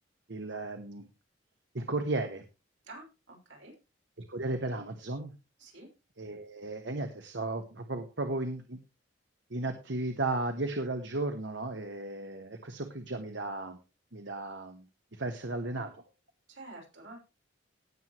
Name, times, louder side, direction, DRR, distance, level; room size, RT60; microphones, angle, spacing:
voice 1, 0.3-1.0 1.7-2.4 4.3-5.3 6.2-8.8 9.5-13.8 14.1-14.8 15.1-15.9, right 2 dB, 70° right, 6 dB, 1.3 m, -35 dB
voice 2, 2.8-3.7 5.6-5.9 16.5-17.2, right 2 dB, 85° right, 0 dB, 5.8 m, -49 dB
17.5 x 7.5 x 3.1 m, 0.28 s
head